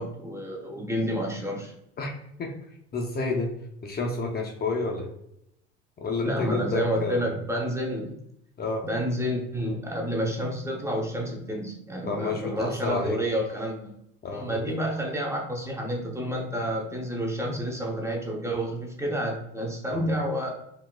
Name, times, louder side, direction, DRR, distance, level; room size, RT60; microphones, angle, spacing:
voice 1, 0.0-1.7 6.2-8.1 8.8-13.9 14.3-20.5, equal, 10° right, 0 dB, 0.8 m, -29 dB
voice 2, 2.9-3.5 3.8-5.1 6.0-7.3 8.6-8.8 12.1-13.2 14.2-14.6 19.9-20.0, left 3 dB, 35° left, 1 dB, 0.6 m, -29 dB
3.7 x 2.8 x 2.3 m, 0.76 s
supercardioid pair, 90°, 30 cm